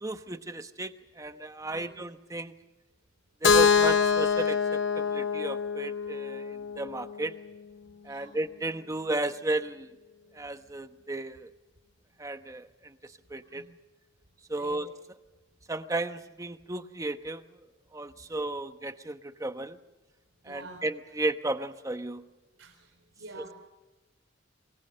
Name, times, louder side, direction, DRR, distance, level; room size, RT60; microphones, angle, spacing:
voice 1, 0.0-2.5 3.4-7.3 8.0-9.9 10.3-11.5 12.2-12.9 13.3-13.6 14.5-14.9 15.7-17.4 17.9-19.8 20.4-22.2, right 2 dB, 15° right, 9 dB, 1.0 m, -34 dB
voice 2, 1.6-2.0 6.7-6.8 8.1-8.4 13.5-13.7 14.6-14.8 20.4-20.9 22.6-23.5, right 2 dB, 85° right, 6 dB, 3.7 m, -48 dB
Keyboard (musical), 3.4-7.3, left 6 dB, 65° left, 0.8 m, -25 dB
25.5 x 21.5 x 6.5 m, 1.2 s
head